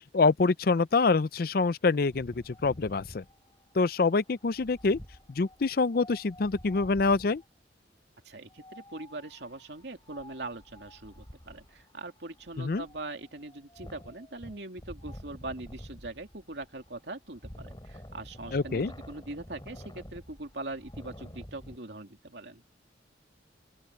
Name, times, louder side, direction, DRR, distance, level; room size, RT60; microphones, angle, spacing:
voice 1, 0.1-3.2 3.7-5.0 5.3-7.4 12.6-12.8 18.5-18.9, left 4 dB, 55° left, 0.5 m, -26 dB
Wind, 2.1-7.4 8.5-21.8, equal, 25° left, 4.3 m, -49 dB
voice 2, 8.2-22.6, right 2 dB, 70° right, 2.7 m, -42 dB
open air
head